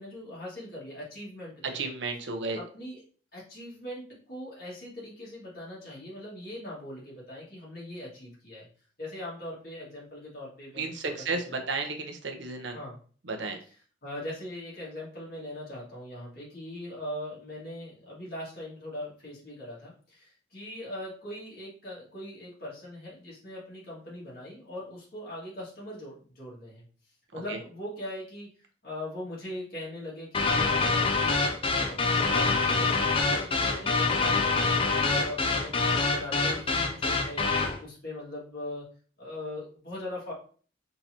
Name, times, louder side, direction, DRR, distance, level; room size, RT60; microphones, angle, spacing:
voice 1, 0.0-1.9 2.6-3.0 3.3-8.7 9.0-11.6 12.7-13.0 14.0-26.8 27.3-28.5 28.8-38.9 39.2-40.3, left 1 dB, 50° left, -6 dB, 2.1 m, -41 dB
voice 2, 1.7-2.6 10.7-12.8 13.2-13.6 27.5-27.6, right 3 dB, 75° right, 3 dB, 0.8 m, -33 dB
sound 1, 30.3-37.8, left 3 dB, 30° left, 0.5 m, -25 dB
4.1 x 3.8 x 2.9 m, 0.43 s
head